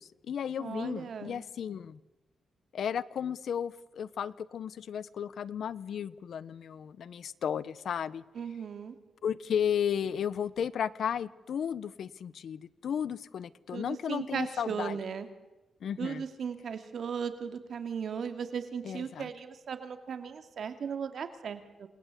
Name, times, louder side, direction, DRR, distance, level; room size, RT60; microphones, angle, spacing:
voice 1, 0.0-2.0 2.7-8.2 9.2-15.0 15.8-16.2 18.8-19.3, left 8 dB, 65° left, 17 dB, 1.0 m, -34 dB
voice 2, 0.6-1.4 8.3-8.9 13.7-15.3 16.0-21.9, right 6 dB, 60° right, 8 dB, 2.4 m, -37 dB
28.5 x 20.5 x 8.4 m, 1.1 s
wide cardioid pair, 135°, 0 cm